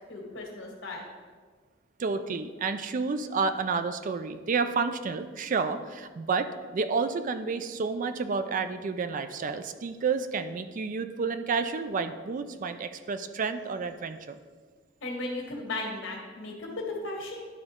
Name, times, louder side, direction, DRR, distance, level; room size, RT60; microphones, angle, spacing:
voice 1, 0.1-1.0 15.0-17.4, left 2 dB, 75° left, 0 dB, 1.6 m, -36 dB
voice 2, 2.0-14.4, right 4 dB, 45° right, 10 dB, 0.4 m, -30 dB
11.0 x 3.9 x 3.6 m, 1.5 s
head